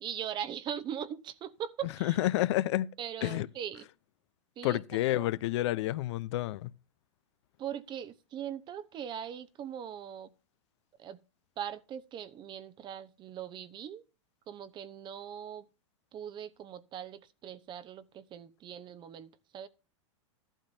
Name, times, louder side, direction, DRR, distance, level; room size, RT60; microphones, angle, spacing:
voice 1, 0.0-2.2 3.0-3.9 4.6-5.3 7.6-10.3 11.0-11.2 11.6-14.0 14.5-15.7 16.1-19.7, right 9 dB, 30° right, 0.9 m, -40 dB
voice 2, 2.0-2.9 3.2-3.5 4.6-6.7, left 15 dB, 65° left, 0.7 m, -29 dB
13.5 x 12.0 x 2.7 m
hypercardioid pair, 125°, 16 cm